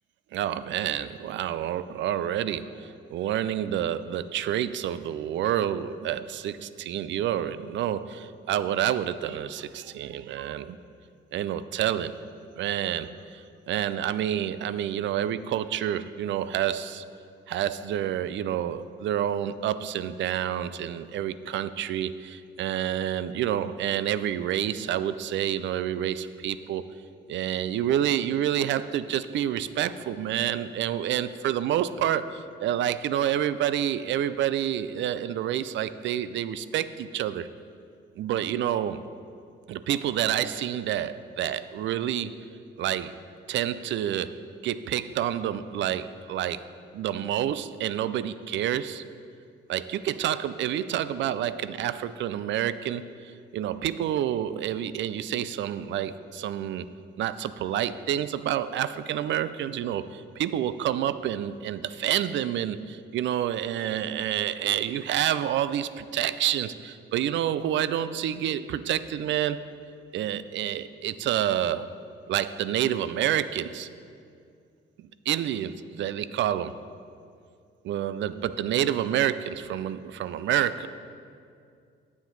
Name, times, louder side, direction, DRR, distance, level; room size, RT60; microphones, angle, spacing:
voice 1, 0.3-10.8 11.3-12.1 12.6-13.1 13.7-17.0 17.5-26.8 27.3-37.5 38.2-39.0 39.7-42.3 42.8-43.1 43.5-44.3 44.6-46.6 46.9-49.0 49.7-53.0 53.5-56.9 57.2-69.6 70.1-71.9 72.3-73.9 75.3-76.7 77.8-80.9, right 11 dB, 70° right, 14 dB, 0.4 m, -28 dB
8.9 x 7.2 x 3.9 m, 2.3 s
cardioid pair, 90°, 20 cm